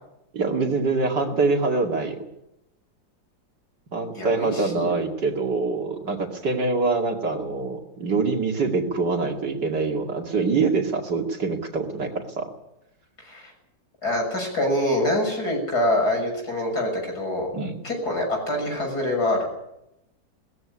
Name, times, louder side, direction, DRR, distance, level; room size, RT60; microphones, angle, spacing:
voice 1, 0.3-2.2 3.9-12.5 17.5-17.8, right 4 dB, 65° right, 2 dB, 3.1 m, -25 dB
voice 2, 4.1-4.9 13.2-13.5 14.0-17.5 17.8-19.5, left 1 dB, 55° left, 2 dB, 7.0 m, -25 dB
19.5 x 14.5 x 9.8 m, 0.85 s
omnidirectional pair, 2.0 m